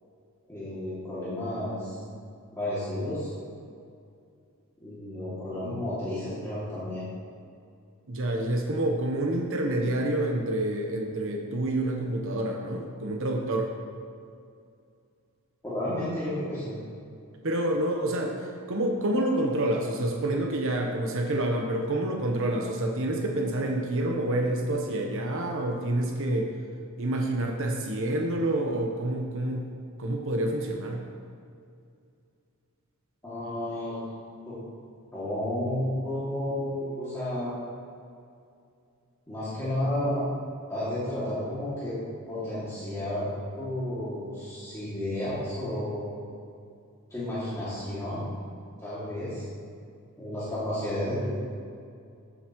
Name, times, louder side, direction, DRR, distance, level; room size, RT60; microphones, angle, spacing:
voice 1, 0.5-2.0 2.5-3.3 4.8-7.0 15.6-16.7 33.2-34.0 34.4-34.6 35.1-37.6 39.3-40.2 40.7-42.0 42.3-43.3 43.6-46.0 47.1-48.2 48.8-49.5 50.2-51.3, left 1 dB, 15° left, -12 dB, 2.4 m, -32 dB
voice 2, 8.1-13.7 17.4-26.5 27.0-29.7 30.0-31.0, right 1 dB, 65° right, 1 dB, 1.0 m, -28 dB
14.5 x 7.9 x 3.1 m, 2.4 s
head